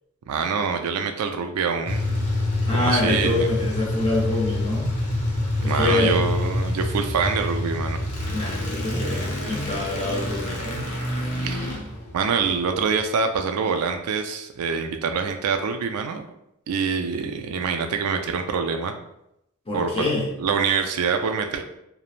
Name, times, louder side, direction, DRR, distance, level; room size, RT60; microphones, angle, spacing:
voice 1, 0.3-2.0 2.7-3.5 5.6-8.0 11.4-11.7 12.1-16.2 16.7-18.9 19.7-20.1 20.4-21.6, right 5 dB, 85° right, 6 dB, 0.4 m, -25 dB
sound 1, 1.9-13.0, left 1 dB, 90° left, 0.8 m, -27 dB
voice 2, 2.7-4.9 5.6-6.2 8.3-10.9 19.7-20.3, left 2 dB, 25° left, -3 dB, 0.7 m, -26 dB
3.0 x 2.0 x 2.4 m, 0.82 s
head